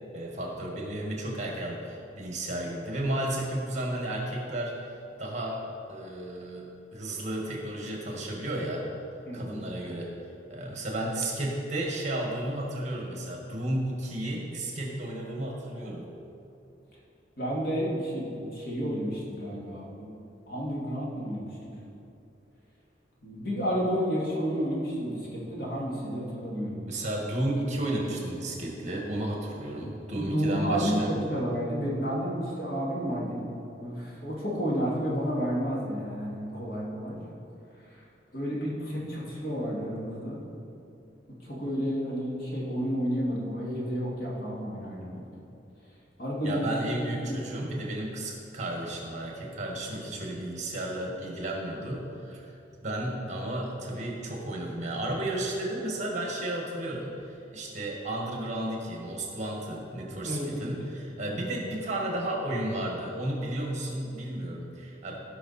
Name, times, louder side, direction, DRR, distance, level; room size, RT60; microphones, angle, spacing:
voice 1, 0.1-4.8 5.2-5.6 5.9-8.9 9.3-16.1 26.9-31.1 46.4-52.5 52.8-65.2, right 1 dB, 40° right, -2 dB, 1.8 m, -33 dB
voice 2, 9.3-9.7 17.4-20.1 20.5-21.5 23.2-26.8 30.1-33.5 33.8-37.2 37.9-38.1 38.3-40.4 41.4-45.2 46.2-47.6 60.2-60.7, equal, 60° left, -5 dB, 2.4 m, -31 dB
16.5 x 5.7 x 4.3 m, 2.7 s
head